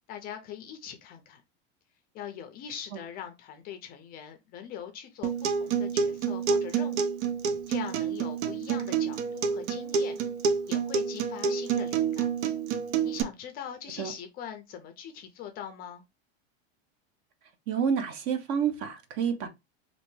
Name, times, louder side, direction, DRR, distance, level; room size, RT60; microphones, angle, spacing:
voice 1, 0.1-1.4 2.1-7.1 7.7-10.2 10.7-12.3 13.0-16.0, left 9 dB, 30° left, 0.4 m, -42 dB
Acoustic guitar, 5.2-13.2, right 6 dB, 85° right, 0.6 m, -28 dB
voice 2, 17.7-19.5, right 7 dB, 45° right, 0.7 m, -29 dB
3.2 x 2.6 x 3.1 m
supercardioid pair, 150°, 33 cm